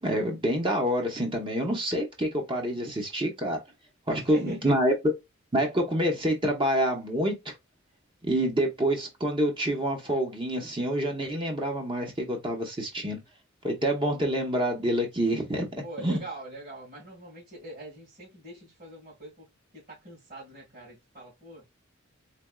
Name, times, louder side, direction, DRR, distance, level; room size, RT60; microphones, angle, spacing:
voice 1, 0.0-3.6 4.1-4.9 5.5-7.5 8.2-13.2 13.6-16.2, right 1 dB, 25° right, 0.9 m, -27 dB
voice 2, 4.1-4.8 15.8-19.5 19.7-21.6, right 1 dB, 45° right, 1.9 m, -43 dB
3.4 x 3.4 x 2.3 m
head